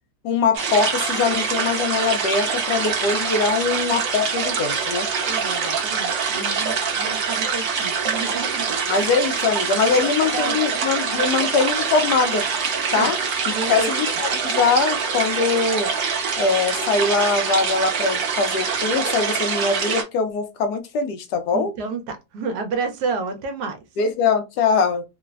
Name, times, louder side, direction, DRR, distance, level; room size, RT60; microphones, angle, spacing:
voice 1, 0.2-5.1 8.9-12.4 12.9-13.2 13.5-15.9 16.4-21.7 24.0-25.0, left 4 dB, 75° left, 1.1 m, -22 dB
sound 1, 0.5-20.0, right 6 dB, 55° right, 0.8 m, -24 dB
voice 2, 5.2-8.9 9.9-10.0 10.3-10.5 11.2-11.3 13.0-13.1 13.5-14.0 21.5-23.8, right 4 dB, 75° right, 1.1 m, -30 dB
3.2 x 2.0 x 2.3 m
omnidirectional pair, 1.8 m